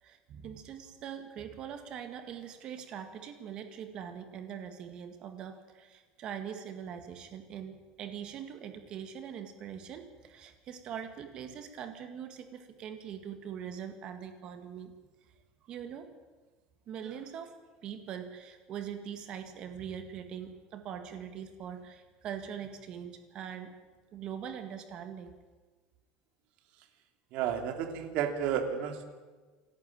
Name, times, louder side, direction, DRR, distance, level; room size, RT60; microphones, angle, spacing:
voice 1, 0.0-14.9 15.6-16.1 16.9-17.5 17.8-23.7 24.1-25.4, right 8 dB, 40° right, 7 dB, 1.9 m, -42 dB
voice 2, 27.3-29.0, right 8 dB, 55° right, 6 dB, 3.0 m, -32 dB
27.5 x 12.5 x 8.9 m, 1.3 s
cardioid pair, 160°, 2 cm